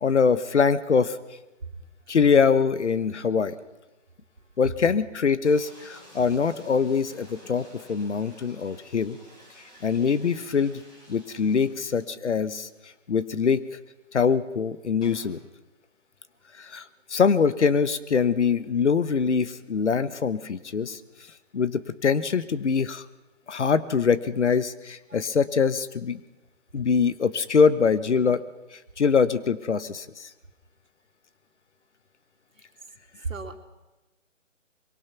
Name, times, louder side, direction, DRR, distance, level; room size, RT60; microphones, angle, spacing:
voice 1, 0.0-1.2 2.1-3.5 4.6-9.2 9.8-10.8 11.1-12.7 13.1-13.6 14.1-15.4 16.6-16.8 17.1-21.0 21.5-23.0 23.5-26.2 26.7-28.4 29.0-30.3, left 5 dB, 65° left, 15 dB, 1.3 m, -23 dB
sound 1, 5.4-12.6 12.9-13.0 13.3-13.4 15.0-15.4, equal, 10° left, 4.6 m, -52 dB
voice 2, 33.2-33.6, right 3 dB, 85° right, 6 dB, 2.9 m, -35 dB
24.5 x 22.5 x 6.0 m, 1.1 s
figure-of-eight pair, 150°, 38 cm